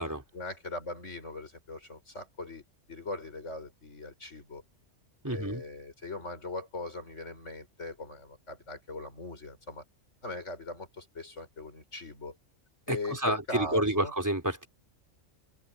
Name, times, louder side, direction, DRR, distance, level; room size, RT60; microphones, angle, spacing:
voice 1, 0.3-4.6 5.3-9.8 10.2-12.4 12.9-14.1, left 2 dB, 65° left, 5.7 m, -40 dB
voice 2, 5.2-5.6 12.9-14.7, right 1 dB, 15° right, 3.5 m, -29 dB
omnidirectional pair, 1.3 m